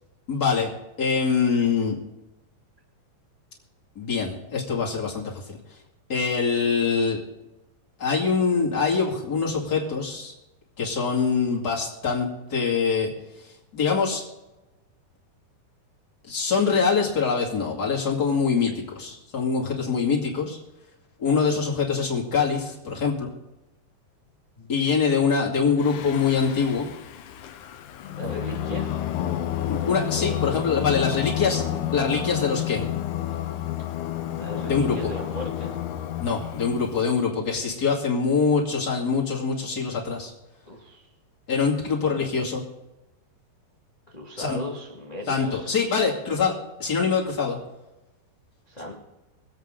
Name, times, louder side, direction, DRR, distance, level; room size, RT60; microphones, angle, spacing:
voice 1, 0.3-0.7 1.0-2.0 4.0-5.6 6.1-7.2 8.0-10.3 10.8-13.1 13.7-14.2 16.3-20.6 21.2-23.3 24.7-26.9 29.6-31.6 31.9-33.0 34.7-35.0 36.2-40.3 41.5-42.6 44.4-44.6 45.3-47.6, left 5 dB, 30° left, -3 dB, 2.2 m, -24 dB
Singing, 25.8-37.1, left 12 dB, 85° left, 1.7 m, -30 dB
voice 2, 28.1-28.9 34.4-35.7 37.7-37.8 40.6-41.0 42.0-42.2 44.1-45.7 48.7-48.9, left 1 dB, 50° left, -2 dB, 0.5 m, -36 dB
24.0 x 8.2 x 3.8 m, 0.98 s
omnidirectional pair, 4.7 m